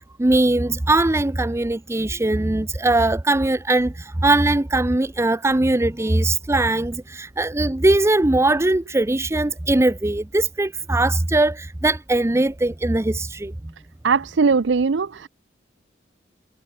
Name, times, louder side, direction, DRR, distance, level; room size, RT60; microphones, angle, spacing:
voice 1, 0.2-13.7, right 2 dB, 15° right, 0.6 m, -20 dB
voice 2, 14.0-15.3, right 5 dB, 75° right, 0.6 m, -19 dB
head